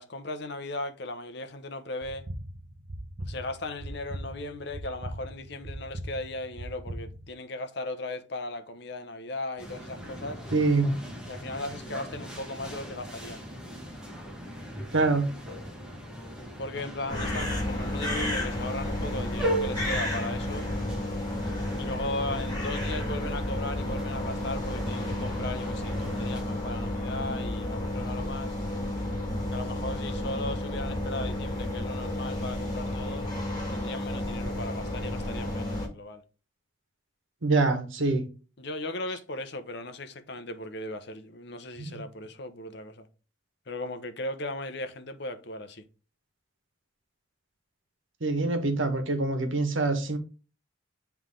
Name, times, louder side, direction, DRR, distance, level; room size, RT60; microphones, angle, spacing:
voice 1, 0.0-2.3 3.3-10.4 11.3-13.4 16.6-20.7 21.8-28.6 29.5-33.3 33.7-36.2 38.6-43.1 43.7-45.8, left 2 dB, 60° left, 0.9 m, -37 dB
sound 1, 2.0-7.3, right 1 dB, 60° right, 1.0 m, -40 dB
sound 2, 9.6-26.4, right 1 dB, 5° right, 1.4 m, -39 dB
voice 2, 10.5-11.0 14.9-15.3 37.4-38.2 41.8-42.0 48.2-50.2, right 3 dB, 85° right, 1.3 m, -25 dB
sound 3, 17.1-35.9, left 1 dB, 20° left, 3.2 m, -32 dB
8.0 x 3.5 x 3.7 m
head